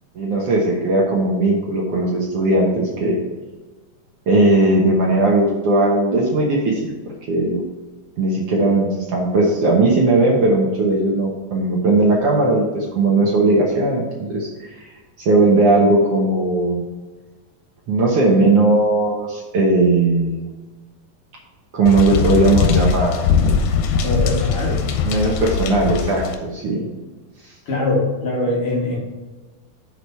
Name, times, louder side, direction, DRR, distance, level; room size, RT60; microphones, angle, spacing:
voice 1, 0.1-3.2 4.3-6.9 7.3-7.6 8.2-14.8 15.2-16.8 17.9-20.5 21.7-23.1 25.0-26.8, right 2 dB, 75° right, -3 dB, 1.4 m, -17 dB
sound 1, 21.9-26.3, left 6 dB, 85° left, 2.6 m, -20 dB
voice 2, 24.0-24.8 27.7-29.0, left 2 dB, 50° left, -3 dB, 2.1 m, -22 dB
6.8 x 4.6 x 5.5 m, 1.2 s
omnidirectional pair, 4.2 m